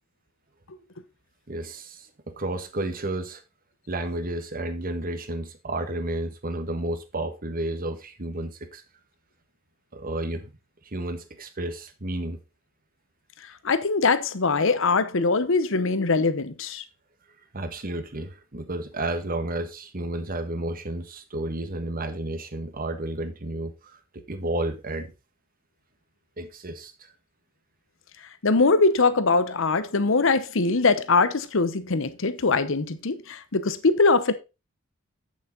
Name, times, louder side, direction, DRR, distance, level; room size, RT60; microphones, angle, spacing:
voice 1, 1.5-3.4 3.9-8.8 9.9-10.5 10.8-12.4 17.5-25.1 26.4-27.1, right 1 dB, 45° right, 1.4 m, -32 dB
voice 2, 13.6-16.8 28.4-34.3, left 3 dB, 65° left, 0.9 m, -22 dB
8.5 x 7.3 x 4.0 m
head